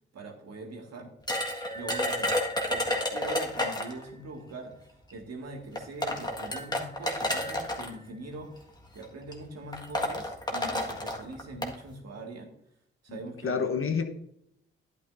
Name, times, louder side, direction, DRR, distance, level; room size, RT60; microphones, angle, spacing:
voice 1, 0.1-1.1 1.7-2.4 2.7-8.6 8.9-12.5 13.0-13.6, right 2 dB, 60° right, 2 dB, 2.0 m, -42 dB
sound 1, 1.3-4.0 5.1-5.2 5.8-7.9 8.8-9.0 9.3-9.4 9.7-11.7, left 1 dB, 15° left, 1.7 m, -30 dB
voice 2, 13.1-14.0, left 6 dB, 45° left, 7 dB, 1.1 m, -29 dB
10.5 x 8.5 x 2.6 m, 0.76 s
hypercardioid pair, 40°, 29 cm